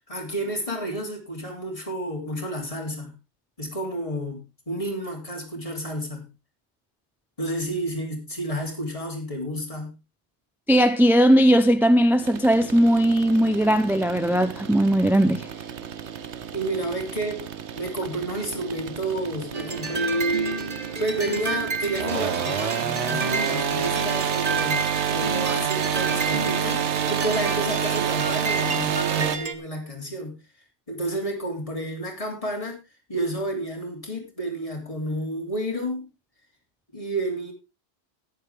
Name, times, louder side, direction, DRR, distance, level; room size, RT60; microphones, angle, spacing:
voice 1, 0.1-3.1 3.6-6.3 7.4-9.9 16.5-17.4 17.8-20.6 21.0-30.4 30.9-32.8 33.1-36.1 36.9-37.5, right 1 dB, 30° left, 3.6 m, -30 dB
voice 2, 10.7-15.5, equal, ahead, 0.5 m, -18 dB
sound 1, 12.2-29.4, right 8 dB, 80° right, 1.2 m, -29 dB
sound 2, 19.5-29.5, right 3 dB, 35° right, 1.4 m, -31 dB
14.5 x 11.0 x 3.4 m
omnidirectional pair, 1.2 m